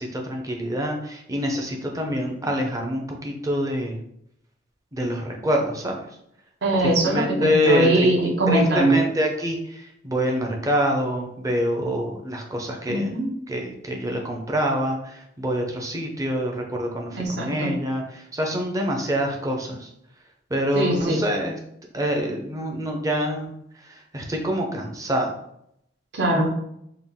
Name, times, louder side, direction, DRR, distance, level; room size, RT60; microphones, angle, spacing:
voice 1, 0.0-4.0 4.9-6.2 6.8-8.1 8.5-19.9 20.5-21.6 21.9-25.4, equal, 15° right, 1 dB, 0.5 m, -26 dB
voice 2, 6.6-9.0 12.9-13.3 17.2-17.7 20.7-21.2 26.1-26.5, right 1 dB, 60° right, -1 dB, 0.9 m, -21 dB
3.8 x 2.3 x 3.5 m, 0.75 s
head